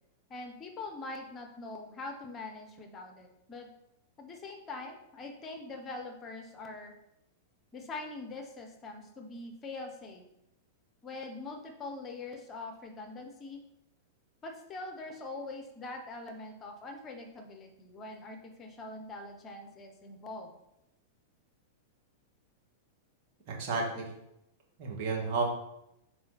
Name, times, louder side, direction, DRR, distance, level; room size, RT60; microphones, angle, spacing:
voice 1, 0.3-3.7 4.2-6.9 7.7-10.2 11.0-13.6 14.4-20.5, left 3 dB, 25° left, 4 dB, 1.1 m, -43 dB
voice 2, 23.5-24.1 24.8-25.4, right 4 dB, 45° right, -2 dB, 2.0 m, -31 dB
5.5 x 4.4 x 4.2 m, 0.83 s
hypercardioid pair, 100°, 0 cm